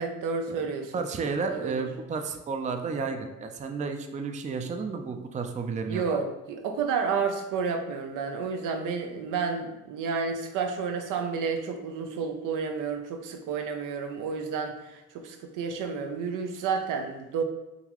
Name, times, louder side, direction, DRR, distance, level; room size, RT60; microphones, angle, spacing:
voice 1, 0.0-0.9 1.5-1.8 5.9-17.4, right 5 dB, 80° right, 5 dB, 0.5 m, -31 dB
voice 2, 0.9-6.2, right 4 dB, 25° right, 5 dB, 0.4 m, -32 dB
3.8 x 2.3 x 2.9 m, 0.96 s
cardioid pair, 75°, 31 cm